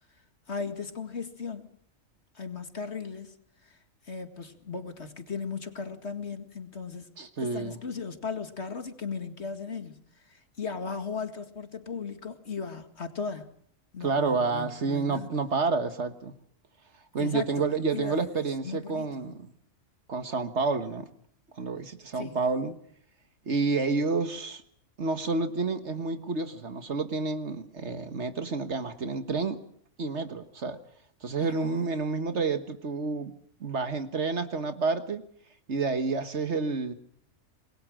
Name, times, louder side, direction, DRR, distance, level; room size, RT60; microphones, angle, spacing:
voice 1, 0.5-1.7 2.3-3.4 3.6-3.8 4.0-7.1 7.4-13.5 13.9-15.3 17.2-17.7 17.9-19.4 22.1-22.4 31.4-31.7, left 5 dB, 50° left, 2.3 m, -37 dB
voice 2, 7.2-7.8 14.0-16.3 17.1-19.5 20.1-21.1 21.5-22.7 23.5-24.6 25.0-29.6 30.0-30.8 31.2-33.3 33.6-35.2 35.7-36.9, right 4 dB, 55° right, 1.7 m, -29 dB
27.0 x 21.5 x 6.3 m
omnidirectional pair, 1.4 m